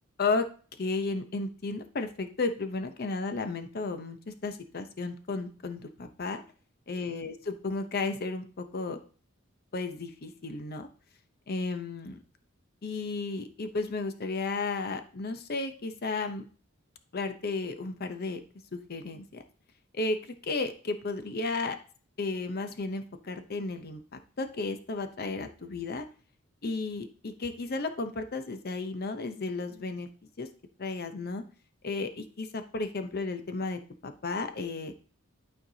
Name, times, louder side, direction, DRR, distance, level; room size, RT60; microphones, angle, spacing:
voice 1, 0.8-6.4 6.9-9.0 9.7-10.9 11.5-12.2 12.8-16.5 17.1-18.4 18.7-19.4 19.9-21.8 22.2-24.0 24.4-26.0 26.6-30.1 30.4-30.5 30.8-31.4 31.8-35.0, left 3 dB, 50° left, 8 dB, 0.7 m, -33 dB
12.0 x 4.5 x 2.8 m, 0.39 s
head